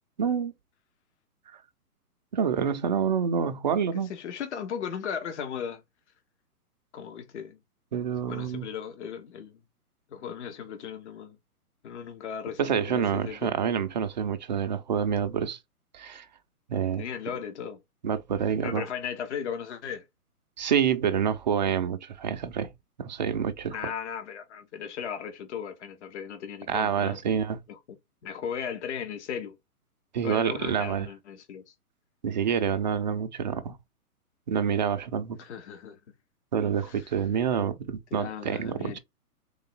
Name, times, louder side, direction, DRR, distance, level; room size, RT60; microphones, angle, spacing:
voice 1, 0.2-0.5 1.5-1.6 2.3-4.1 7.9-8.7 12.6-15.6 15.9-16.3 16.7-17.0 18.0-18.8 20.6-22.7 23.0-23.8 26.7-27.6 30.1-31.1 32.2-33.8 34.5-35.4 36.5-39.0, right 7 dB, 30° right, 0.5 m, -27 dB
voice 2, 3.9-5.8 6.9-7.6 8.3-9.6 10.1-11.4 11.8-13.5 17.0-17.8 18.6-20.0 23.7-27.2 27.7-27.8 28.2-29.6 30.2-31.7 35.4-36.0 36.8-36.9 38.1-39.0, left 7 dB, 50° left, 1.3 m, -36 dB
3.9 x 3.7 x 3.5 m
figure-of-eight pair, 130°, 46 cm